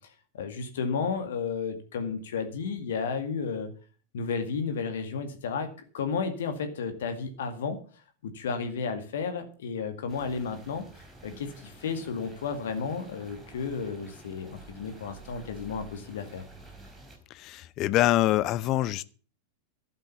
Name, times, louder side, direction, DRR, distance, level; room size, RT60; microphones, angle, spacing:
voice 1, 0.3-3.7 4.1-5.7 5.9-7.8 8.2-10.9 11.2-16.4, left 5 dB, 60° left, 8 dB, 2.0 m, -32 dB
sound 1, 10.1-17.2, right 2 dB, 10° right, 4.7 m, -50 dB
voice 2, 17.3-19.0, left 15 dB, 35° left, 18 dB, 0.6 m, -25 dB
12.0 x 9.0 x 6.9 m, 0.39 s
figure-of-eight pair, 90°, 0 cm